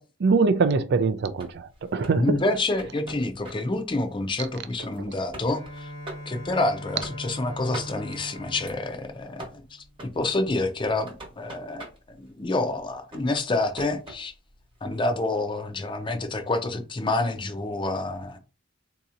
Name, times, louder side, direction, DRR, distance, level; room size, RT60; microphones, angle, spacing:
voice 1, 0.0-2.4, right 4 dB, 60° right, 0.4 m, -23 dB
sound 1, 1.3-15.1, right 1 dB, 25° right, 1.1 m, -46 dB
voice 2, 2.2-5.9 6.3-9.8 10.2-11.9 12.2-14.3 14.8-18.4, left 2 dB, 25° left, 0.5 m, -28 dB
Bowed string instrument, 5.5-10.3, equal, 75° left, 1.1 m, -41 dB
3.9 x 2.8 x 2.4 m
head